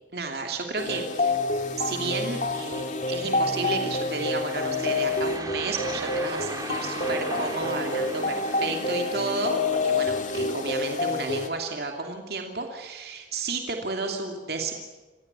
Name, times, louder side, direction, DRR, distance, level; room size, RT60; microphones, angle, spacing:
voice 1, 0.1-1.4 1.8-14.7, right 3 dB, 60° right, 3 dB, 2.8 m, -32 dB
sound 1, 0.8-11.5, left 3 dB, 45° left, 2.5 m, -28 dB
sound 2, 3.9-9.4, right 2 dB, 20° right, 2.9 m, -38 dB
27.5 x 17.0 x 9.7 m, 1.2 s
head